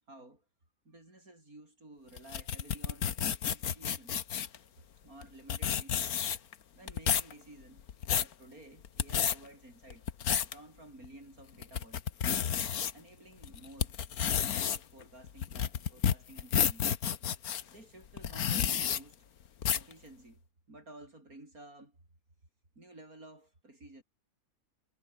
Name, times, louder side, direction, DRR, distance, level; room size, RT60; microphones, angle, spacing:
voice 1, 0.1-0.4 0.8-4.2 5.0-6.2 6.8-10.0 10.4-12.0 12.6-14.0 14.3-16.9 17.7-19.3 19.8-20.4 20.7-22.0 22.8-24.0, right 2 dB, 70° right, 7.8 m, -54 dB
sound 1, 2.2-4.6 5.2-5.3 5.5-6.5 6.9-7.3 7.8-8.3 8.9-9.4 9.9-10.5 11.0-11.1 11.6-12.9 13.4-17.6 18.2-19.0 19.6-19.9, left 8 dB, 75° left, 1.7 m, -30 dB
omnidirectional pair, 1.6 m